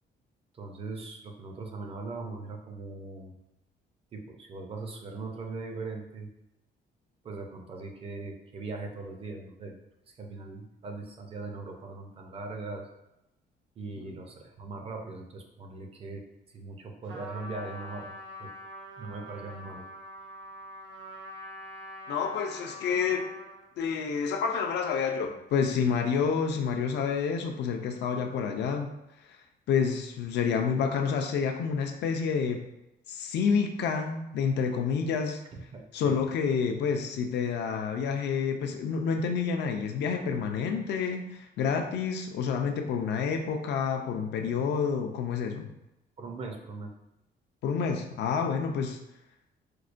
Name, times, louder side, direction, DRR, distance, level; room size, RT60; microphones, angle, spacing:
voice 1, 0.5-3.3 4.1-6.3 7.2-9.8 10.1-12.9 13.8-18.1 18.4-18.5 19.0-19.8 35.5-36.1 46.2-46.9, right 3 dB, 30° right, 3 dB, 0.4 m, -40 dB
Trumpet, 17.1-23.7, left 1 dB, 80° right, 0.6 m, -44 dB
voice 2, 22.1-23.3 23.8-28.9 29.7-32.6 33.1-35.4 35.9-45.7 47.6-49.0, left 6 dB, 70° left, 4 dB, 0.4 m, -29 dB
4.5 x 2.1 x 2.4 m, 0.90 s
cardioid pair, 165°, 18 cm